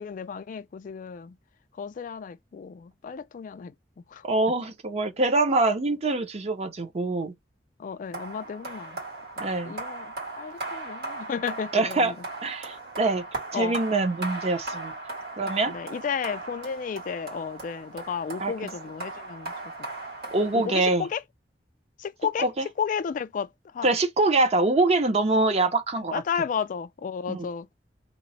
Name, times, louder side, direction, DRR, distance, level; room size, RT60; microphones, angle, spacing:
voice 1, 0.0-1.4 1.8-3.7 4.1-4.2 7.8-9.0 9.4-12.2 13.5-13.8 15.7-19.9 20.5-21.2 22.0-22.5 22.8-23.9 26.1-27.7, left 6 dB, 50° left, 0.3 m, -33 dB
voice 2, 4.2-7.3 9.4-9.7 11.7-12.1 12.4-13.2 13.5-14.9 15.4-15.7 18.4-18.5 20.3-21.1 22.4-22.7 23.8-26.1 27.3-27.5, right 2 dB, 40° right, 0.6 m, -24 dB
sound 1, 8.1-21.2, right 2 dB, 65° right, 1.7 m, -38 dB
2.9 x 2.0 x 4.0 m
head